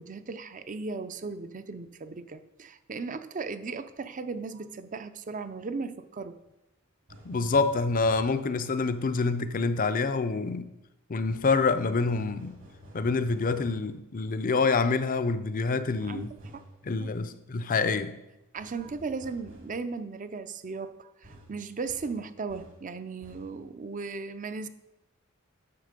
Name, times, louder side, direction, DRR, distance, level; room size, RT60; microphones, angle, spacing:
voice 1, 0.0-6.4 16.1-16.6 17.0-17.2 18.5-24.7, right 4 dB, 40° right, 0.5 m, -37 dB
sound 1, 7.1-8.5 11.2-13.9 15.9-16.8 18.6-19.9 21.2-22.9 23.2-23.6, right 1 dB, 65° right, 1.9 m, -51 dB
voice 2, 7.3-10.7 11.1-12.6 12.9-16.3 16.9-18.2, left 4 dB, 40° left, 0.5 m, -27 dB
9.8 x 6.6 x 5.2 m
head